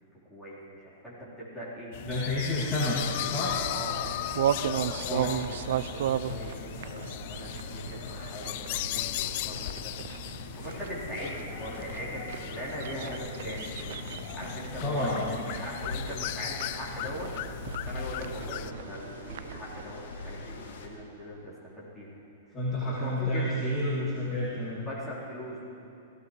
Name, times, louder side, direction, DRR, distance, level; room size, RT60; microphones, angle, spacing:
voice 1, 0.3-1.9 2.5-3.3 3.7-4.1 4.7-17.3 17.8-22.1 23.0-23.6 24.7-25.7, equal, ahead, -10 dB, 3.8 m, -41 dB
sound 1, 1.9-18.7, left 15 dB, 45° left, 0.3 m, -37 dB
voice 2, 2.0-3.5 5.1-5.3 14.8-15.4 22.5-24.9, left 1 dB, 20° left, -9 dB, 2.4 m, -30 dB
sound 2, 2.8-20.9, left 3 dB, 85° left, 1.9 m, -44 dB
sound 3, 3.9-19.9, right 11 dB, 65° right, 0.4 m, -36 dB
17.0 x 16.0 x 3.2 m, 2.9 s
hypercardioid pair, 155°, 0 cm